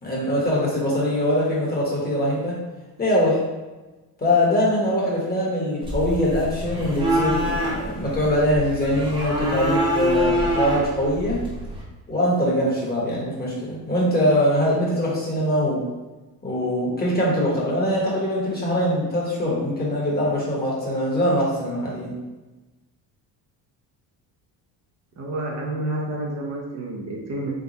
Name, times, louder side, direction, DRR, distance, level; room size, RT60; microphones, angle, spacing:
voice 1, 0.0-2.6 3.0-3.4 4.2-11.4 12.1-15.8 16.4-22.2, left 1 dB, 25° left, -5 dB, 1.3 m, -22 dB
sound 1, 5.8-11.8, equal, 10° right, 1.0 m, -25 dB
voice 2, 25.2-27.5, right 1 dB, 40° right, -2 dB, 0.7 m, -29 dB
3.6 x 2.3 x 4.0 m, 1.1 s
cardioid pair, 120°, 39 cm